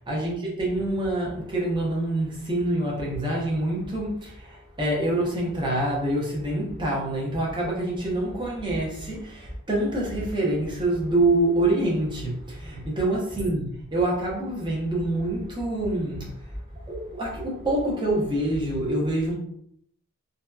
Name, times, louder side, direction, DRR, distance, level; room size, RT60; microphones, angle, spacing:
voice 1, 0.0-16.5 16.8-19.3, right 1 dB, 20° right, 0.6 m, -26 dB
2.7 x 2.2 x 2.2 m
head